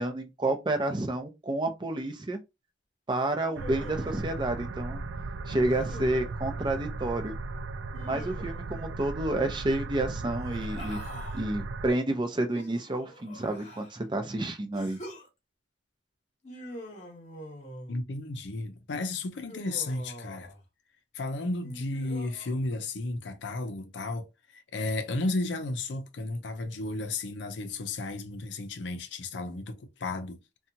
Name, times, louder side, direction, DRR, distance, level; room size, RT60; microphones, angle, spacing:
voice 1, 0.0-2.4 3.1-5.0 5.5-7.4 8.0-11.0 11.3-15.0, right 2 dB, 25° right, 0.5 m, -30 dB
Human voice, 3.4-4.3 5.7-6.4 7.9-8.7 10.3-11.4 12.5-14.0 14.7-15.3 16.4-18.0 19.4-20.6 21.6-22.5, left 1 dB, 40° left, 0.9 m, -45 dB
sound 1, 3.6-11.9, right 3 dB, 80° right, 0.3 m, -36 dB
voice 2, 17.9-20.5 21.1-24.3 24.5-30.4, left 2 dB, 75° left, 0.5 m, -33 dB
2.7 x 2.2 x 2.6 m
head